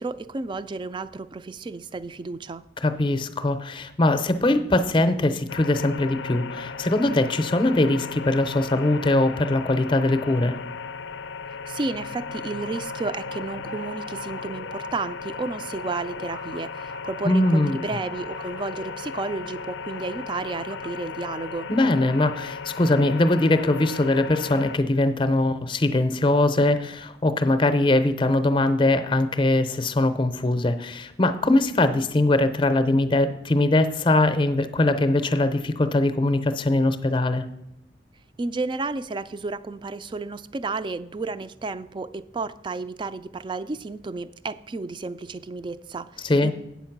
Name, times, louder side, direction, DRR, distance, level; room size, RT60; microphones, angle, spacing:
voice 1, 0.0-2.6 11.7-21.7 38.4-46.5, right 3 dB, 25° right, 14 dB, 0.3 m, -32 dB
voice 2, 2.8-10.6 17.2-17.8 21.7-37.5 46.2-46.5, left 2 dB, 30° left, 10 dB, 0.6 m, -21 dB
sound 1, 5.5-24.8, left 5 dB, 90° left, 0.4 m, -36 dB
sound 2, 12.6-19.7 19.9-20.9, right 3 dB, 85° right, 0.9 m, -42 dB
8.2 x 7.1 x 5.9 m, 0.88 s
head